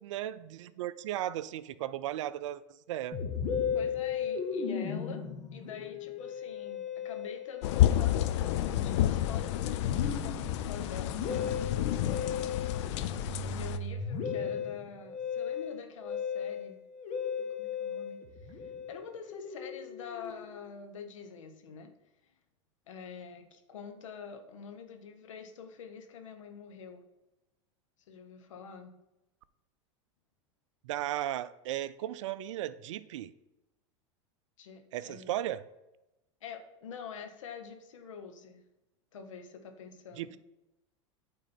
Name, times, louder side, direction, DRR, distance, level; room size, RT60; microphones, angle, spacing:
voice 1, 0.0-2.6 2.9-3.2 30.8-33.3 34.9-35.6 40.2-40.4, right 13 dB, 70° right, 16 dB, 0.4 m, -35 dB
Musical instrument, 3.1-20.7, left 6 dB, 50° left, 1.2 m, -37 dB
voice 2, 3.7-5.2 5.5-11.6 12.0-12.7 13.4-16.8 17.4-21.9 22.9-27.0 28.1-28.9 34.6-35.3 36.4-38.6 39.1-40.4, left 6 dB, 80° left, 6 dB, 1.1 m, -46 dB
sound 1, 7.6-13.8, left 12 dB, 65° left, 0.5 m, -30 dB
8.9 x 3.8 x 4.3 m, 0.95 s
hypercardioid pair, 100°, 16 cm